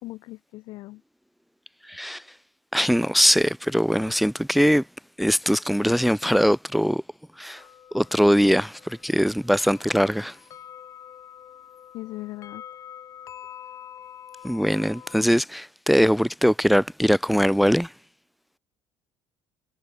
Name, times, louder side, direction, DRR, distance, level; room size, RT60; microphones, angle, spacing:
voice 1, 0.0-1.0 11.9-12.6, left 18 dB, 70° left, 5.1 m, -38 dB
voice 2, 1.9-2.2 2.7-4.8 5.2-7.0 7.4-7.6 7.9-10.4 14.4-17.9, equal, ahead, 0.8 m, -21 dB
sound 1, 7.6-15.3, left 9 dB, 45° left, 7.4 m, -46 dB
cardioid pair, 130°, 8 cm